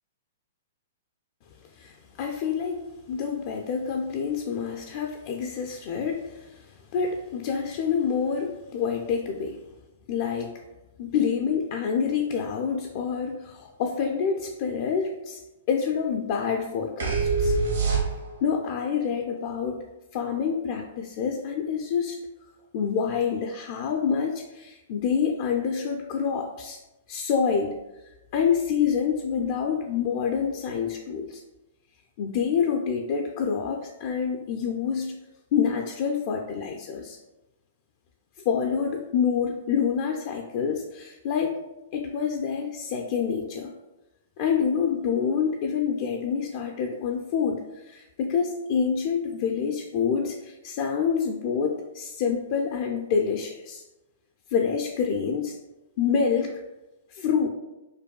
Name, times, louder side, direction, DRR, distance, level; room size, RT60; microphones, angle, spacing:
voice 1, 1.7-2.8 3.1-9.6 10.1-10.6 11.0-15.4 15.7-17.6 18.4-19.8 20.1-22.2 22.7-26.8 27.1-27.8 28.3-31.4 32.2-35.2 35.5-37.2 38.5-41.6 41.9-43.7 44.4-53.8 54.5-55.6 56.0-56.6 57.1-57.5, left 6 dB, 50° left, 2 dB, 0.3 m, -27 dB
sound 1, 17.0-18.5, right 4 dB, 80° right, 0.8 m, -24 dB
5.0 x 2.2 x 2.3 m, 1.0 s
hypercardioid pair, 120°, 0 cm